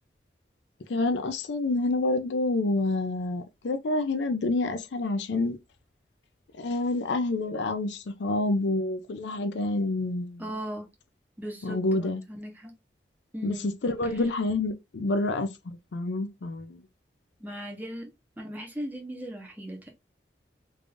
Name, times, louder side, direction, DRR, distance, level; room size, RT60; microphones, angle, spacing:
voice 1, 0.9-5.6 6.6-10.4 11.6-12.2 13.4-13.6 13.8-16.8, left 2 dB, 85° left, 0.5 m, -28 dB
voice 2, 10.4-10.9 11.4-12.7 13.3-13.7 14.0-14.3 17.4-19.9, equal, 10° right, 0.8 m, -38 dB
3.4 x 2.5 x 3.4 m
head